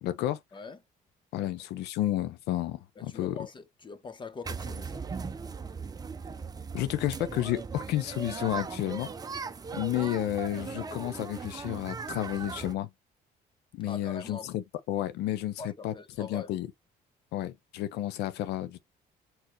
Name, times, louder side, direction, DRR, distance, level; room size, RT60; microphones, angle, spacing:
voice 1, 0.0-0.4 1.3-3.4 6.7-9.1 9.7-12.9 13.7-16.7 17.3-18.8, left 13 dB, 80° left, 0.6 m, -31 dB
voice 2, 3.0-5.0 13.9-14.5 15.6-16.5, left 4 dB, 30° left, 0.9 m, -43 dB
sound 1, 4.4-12.8, right 5 dB, 20° right, 0.6 m, -38 dB
4.4 x 3.9 x 2.9 m
cardioid pair, 110°, 17 cm